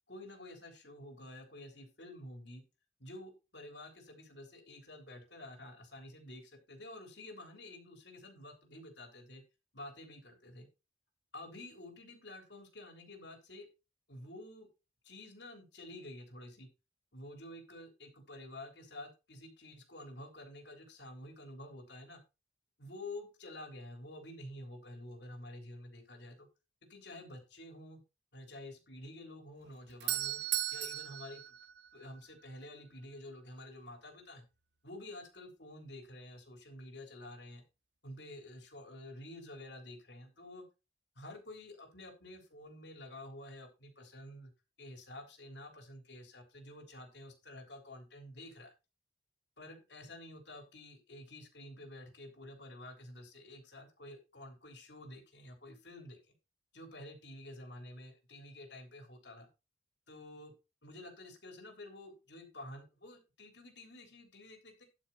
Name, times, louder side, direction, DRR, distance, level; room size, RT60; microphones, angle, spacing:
voice 1, 0.1-2.6 3.0-9.4 9.7-10.7 11.3-13.7 14.1-14.7 15.0-16.7 17.1-22.2 22.8-26.5 26.9-28.0 28.3-30.4 30.7-31.6 31.9-34.4 34.8-37.6 38.0-40.6 41.2-44.5 44.8-48.7 49.6-56.2 56.7-59.5 60.1-60.5 60.8-64.8, left 1 dB, 65° left, 4 dB, 3.5 m, -50 dB
Doorbell, 29.6-32.5, right 14 dB, 65° right, 1.0 m, -37 dB
12.5 x 6.3 x 4.1 m, 0.28 s
head